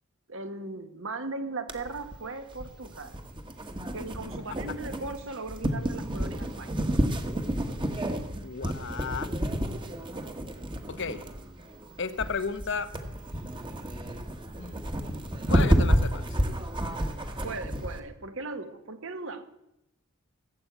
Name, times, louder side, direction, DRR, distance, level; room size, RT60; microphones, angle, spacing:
voice 1, 0.3-3.2 3.9-6.8 17.4-19.4, right 3 dB, 60° right, 9 dB, 1.5 m, -38 dB
sound 1, 1.7-18.0, equal, 20° right, 1.4 m, -30 dB
voice 2, 8.4-9.3 10.9-11.2 12.0-12.9 14.6-16.2, left 5 dB, 55° left, 12 dB, 1.0 m, -34 dB
17.5 x 8.6 x 8.1 m, 0.87 s
head